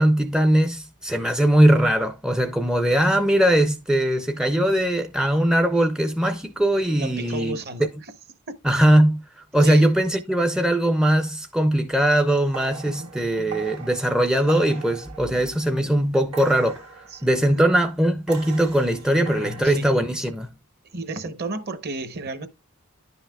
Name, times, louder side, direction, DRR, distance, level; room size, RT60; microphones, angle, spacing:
voice 1, 0.0-7.6 8.6-9.2 9.5-20.5, right 1 dB, 5° right, 0.4 m, -20 dB
voice 2, 6.9-7.9 9.6-9.9 12.9-13.1 15.3-15.4 17.1-17.3 17.5-17.6 18.9-19.9 20.8-22.5, right 2 dB, 45° right, 0.9 m, -33 dB
sound 1, 12.2-15.9 16.3-17.8 18.3-19.6, right 5 dB, 80° right, 1.6 m, -40 dB
10.5 x 5.6 x 2.3 m
head